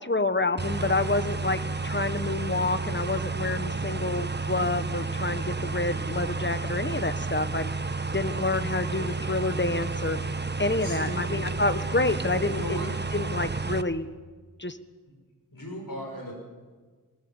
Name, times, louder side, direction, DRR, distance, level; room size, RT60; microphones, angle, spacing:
voice 1, 0.0-7.7 8.1-10.2 10.6-12.8 13.1-14.1 14.6-14.8, left 2 dB, 35° left, 12 dB, 1.2 m, -28 dB
sound 1, 0.6-13.8, right 3 dB, 30° right, 0.9 m, -31 dB
voice 2, 5.8-6.3 10.8-11.4 12.5-12.9 15.1-15.2 15.5-16.3, equal, 70° left, 0 dB, 5.8 m, -37 dB
20.5 x 20.0 x 7.2 m, 1.4 s
wide cardioid pair, 45°, 34 cm